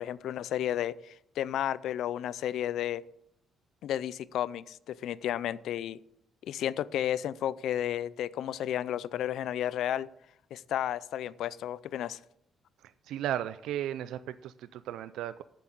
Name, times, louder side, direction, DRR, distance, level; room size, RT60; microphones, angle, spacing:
voice 1, 0.0-3.0 3.8-6.0 6.4-10.1 10.5-12.2, left 11 dB, 80° left, 19 dB, 0.4 m, -32 dB
voice 2, 12.8-15.4, right 11 dB, 85° right, 14 dB, 0.3 m, -35 dB
7.8 x 7.4 x 8.5 m, 0.78 s
cardioid pair, 90°, 0 cm